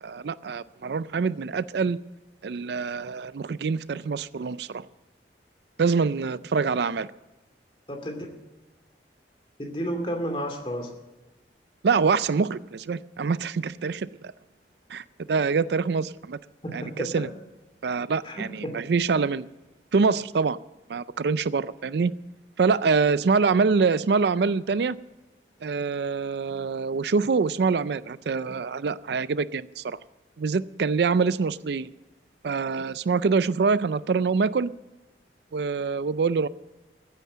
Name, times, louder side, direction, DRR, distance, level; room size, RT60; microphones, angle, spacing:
voice 1, 0.0-2.0 2.4-4.9 5.8-7.1 11.8-14.1 14.9-16.4 16.7-17.3 17.8-19.5 19.9-20.6 20.9-22.1 22.6-25.0 25.6-30.0 30.4-31.9 32.4-34.7 35.5-36.5, right 5 dB, 70° right, 17 dB, 0.4 m, -25 dB
voice 2, 7.9-8.3 9.6-10.9 16.6-17.3 18.2-18.7, equal, 30° left, 4 dB, 2.4 m, -32 dB
15.0 x 9.1 x 7.4 m, 1.1 s
head